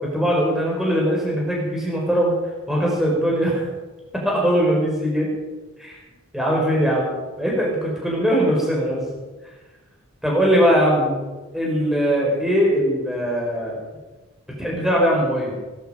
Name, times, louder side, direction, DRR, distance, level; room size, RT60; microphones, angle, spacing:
voice 1, 0.0-2.3 2.7-3.7 4.1-5.3 5.8-6.0 6.3-7.1 7.4-9.0 10.2-11.2 11.5-13.8 14.6-15.6, equal, ahead, -3 dB, 5.0 m, -20 dB
18.5 x 14.5 x 5.1 m, 1.2 s
head